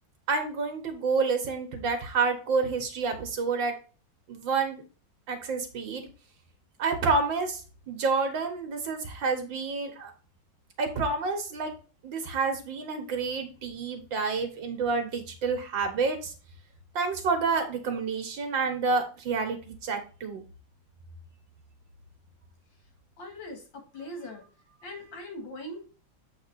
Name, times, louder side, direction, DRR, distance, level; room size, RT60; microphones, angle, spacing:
voice 1, 0.3-3.7 4.3-4.8 5.3-6.1 6.8-7.6 7.9-10.1 10.8-11.7 12.0-16.3 16.9-20.4, right 4 dB, 85° right, 5 dB, 2.2 m, -29 dB
voice 2, 23.2-24.5 24.8-25.9, left 1 dB, 85° left, 4 dB, 2.7 m, -41 dB
7.9 x 4.3 x 4.1 m, 0.35 s
omnidirectional pair, 2.0 m